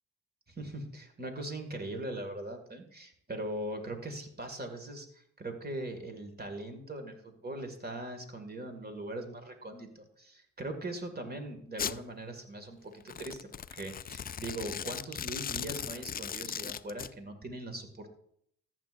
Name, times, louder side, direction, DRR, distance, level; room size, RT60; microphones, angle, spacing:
voice 1, 0.6-18.1, right 1 dB, 30° right, 6 dB, 2.1 m, -40 dB
Domestic sounds home sounds, 11.8-12.0 13.0-17.1, left 8 dB, 30° left, 0.4 m, -38 dB
14.0 x 8.1 x 2.6 m, 0.66 s
supercardioid pair, 50°, 34 cm